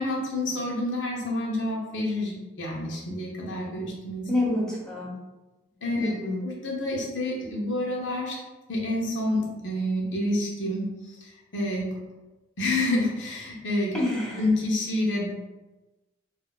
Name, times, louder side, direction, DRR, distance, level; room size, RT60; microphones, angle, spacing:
voice 1, 0.0-4.3 5.8-6.1 6.4-8.4 8.7-11.9 12.6-13.9 14.4-15.3, left 1 dB, 70° left, -3 dB, 0.9 m, -28 dB
voice 2, 4.3-5.2 6.0-6.4 13.9-14.5, left 1 dB, 5° left, -5 dB, 0.7 m, -27 dB
2.7 x 2.3 x 4.1 m, 1.1 s
head